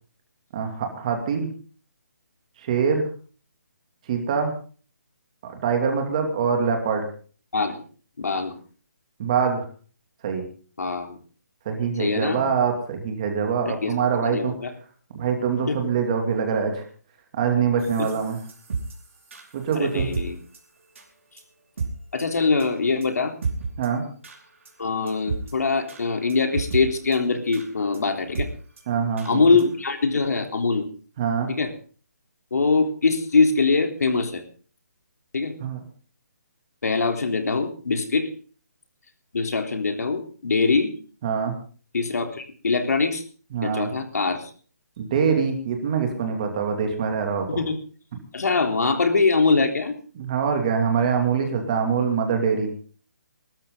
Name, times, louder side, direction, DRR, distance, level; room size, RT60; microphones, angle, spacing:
voice 1, 0.5-1.5 2.6-3.1 4.1-4.5 5.4-7.0 9.2-9.6 10.2-10.4 11.7-14.5 15.1-16.8 17.3-18.4 19.5-20.1 23.8-24.0 28.9-29.4 31.2-31.5 35.6-35.8 41.2-41.6 43.5-43.9 45.0-47.6 50.2-52.7, right 6 dB, 25° right, 4 dB, 2.6 m, -24 dB
voice 2, 7.5-7.8 8.2-8.6 10.8-11.2 12.0-12.4 13.7-14.7 15.7-15.9 18.0-18.1 19.7-20.4 22.1-23.3 24.8-28.5 29.3-30.9 31.5-31.7 32.5-34.4 35.3-35.5 36.8-38.3 39.3-40.9 41.9-43.2 43.6-44.5 47.5-47.8 48.3-50.0, left 4 dB, 70° left, 5 dB, 3.6 m, -23 dB
sound 1, 17.8-20.2 20.5-20.6 21.0-21.1 21.4-21.5 21.8-21.9 22.2-22.3 22.6-22.7 23.0-23.1 23.4-23.9 24.2-24.4 24.6-24.7 25.1-25.5 25.9-26.0 26.3-26.8 27.1-27.2 27.5-27.7 27.9-28.0 28.3-28.5 28.8-28.9 29.2-29.3 29.6-29.7 30.1-30.2, right 5 dB, 50° right, 4.8 m, -31 dB
22.5 x 13.0 x 3.9 m, 0.40 s
hypercardioid pair, 175°, 9 cm